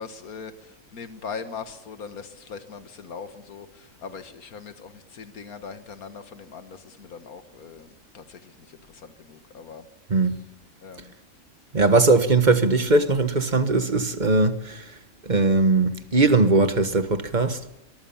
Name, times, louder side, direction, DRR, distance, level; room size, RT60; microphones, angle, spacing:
voice 1, 0.0-9.9 10.8-11.1, left 5 dB, 90° left, 1.9 m, -40 dB
voice 2, 11.7-14.8 15.2-17.6, right 3 dB, 35° right, 1.5 m, -20 dB
24.5 x 23.0 x 7.2 m
omnidirectional pair, 1.5 m